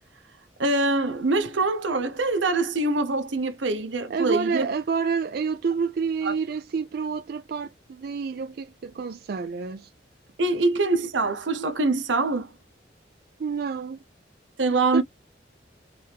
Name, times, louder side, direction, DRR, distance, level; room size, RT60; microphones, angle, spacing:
voice 1, 0.6-4.7 6.2-6.3 10.4-12.5 14.6-15.0, right 2 dB, 85° right, 0.8 m, -24 dB
voice 2, 4.1-9.9 13.4-14.0 14.9-15.0, right 5 dB, 55° right, 0.4 m, -28 dB
3.4 x 3.1 x 3.4 m
head